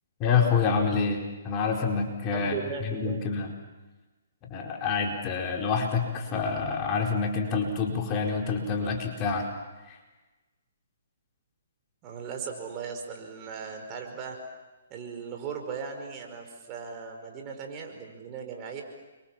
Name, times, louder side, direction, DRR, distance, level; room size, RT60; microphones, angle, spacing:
voice 1, 0.2-2.5 2.8-3.5 4.5-9.5 9.9-10.0, left 5 dB, 30° left, 1 dB, 4.6 m, -27 dB
voice 2, 2.3-3.3 12.0-14.4 14.9-18.8, right 6 dB, 30° right, 3 dB, 5.1 m, -37 dB
30.0 x 24.5 x 7.5 m, 1.2 s
hypercardioid pair, 140°, 0 cm